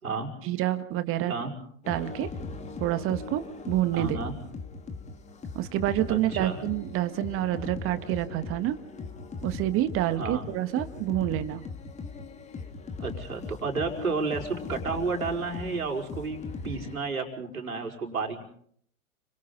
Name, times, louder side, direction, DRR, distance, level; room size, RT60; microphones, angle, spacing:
voice 1, 0.4-1.4 1.9-2.3 2.8-4.2 5.5-8.8 9.4-11.6, right 13 dB, 30° right, 11 dB, 1.7 m, -28 dB
sound 1, 1.8-16.9, left 4 dB, 15° left, 2.3 m, -39 dB
voice 2, 3.9-4.3 6.1-6.6 10.2-10.4 13.0-16.4 16.6-18.5, right 4 dB, 75° right, 2 dB, 5.4 m, -31 dB
30.0 x 27.0 x 4.1 m, 0.63 s
figure-of-eight pair, 100°, 43 cm